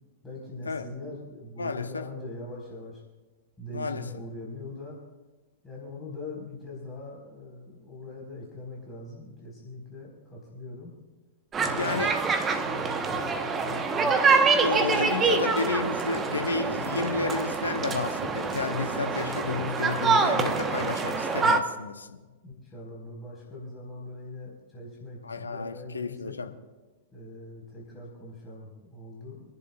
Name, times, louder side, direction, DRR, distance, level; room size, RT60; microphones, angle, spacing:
voice 1, 0.2-3.0 3.6-5.0 5.6-10.9 11.6-14.2 14.6-15.3 22.4-26.4 27.1-29.5, left 2 dB, 15° left, -5 dB, 4.5 m, -42 dB
voice 2, 1.6-2.1 3.7-4.1 11.7-12.2 14.6-22.3 25.2-26.5, left 4 dB, 80° left, 7 dB, 0.9 m, -31 dB
sound 1, 11.5-21.6, right 4 dB, 20° right, 1.1 m, -26 dB
30.0 x 11.0 x 2.4 m, 1.2 s
figure-of-eight pair, 100°, 0 cm